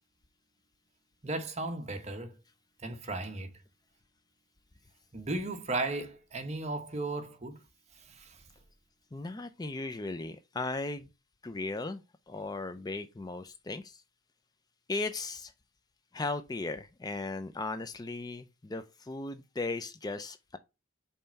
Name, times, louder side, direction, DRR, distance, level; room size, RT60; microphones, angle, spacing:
voice 1, 1.2-2.3 2.8-3.5 5.1-7.6 8.2-8.4, right 2 dB, 30° right, 1.1 m, -35 dB
voice 2, 9.1-11.1 11.4-14.0 14.9-15.5 16.1-20.6, left 3 dB, 20° left, 0.4 m, -37 dB
5.5 x 4.2 x 5.7 m
head